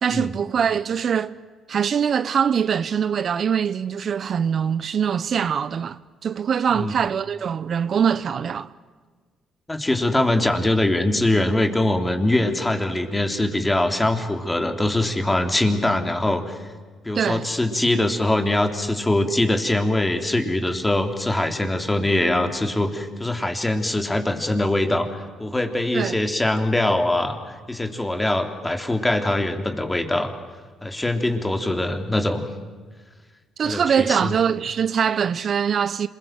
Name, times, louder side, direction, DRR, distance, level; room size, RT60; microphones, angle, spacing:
voice 1, 0.0-1.3 1.7-8.7 17.1-17.5 25.9-26.2 33.6-36.1, right 7 dB, 55° right, 0.7 m, -23 dB
voice 2, 9.7-16.7 17.1-30.3 30.8-32.5 33.6-34.3, left 1 dB, 15° left, 3.5 m, -23 dB
27.0 x 21.5 x 7.7 m
supercardioid pair, 60°, 0 cm